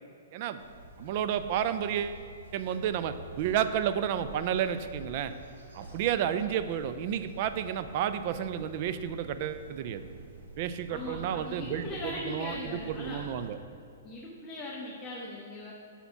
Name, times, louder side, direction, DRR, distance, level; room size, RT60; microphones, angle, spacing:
sound 1, 0.6-13.5, right 2 dB, 85° right, 1.2 m, -48 dB
voice 1, 1.0-2.2 2.5-5.3 5.7-10.1 10.6-13.6, right 9 dB, 45° right, 11 dB, 0.3 m, -31 dB
voice 2, 10.9-13.2 14.0-15.7, left 2 dB, 15° left, -6 dB, 0.8 m, -39 dB
5.7 x 4.1 x 5.7 m, 2.6 s
hypercardioid pair, 140°, 0 cm